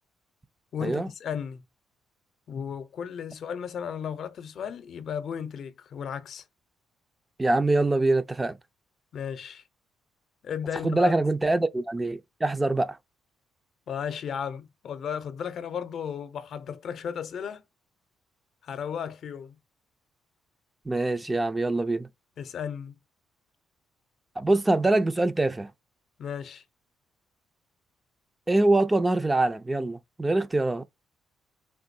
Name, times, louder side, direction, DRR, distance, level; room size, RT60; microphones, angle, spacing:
voice 1, 0.7-1.6 2.5-6.4 9.1-9.6 10.4-11.1 13.9-17.6 18.6-19.6 22.4-23.0 26.2-26.6, left 7 dB, 65° left, 0.6 m, -34 dB
voice 2, 7.4-8.6 10.8-13.0 20.9-22.1 24.4-25.7 28.5-30.8, right 2 dB, 20° right, 0.4 m, -24 dB
3.6 x 2.6 x 2.6 m
cardioid pair, 90°, 0 cm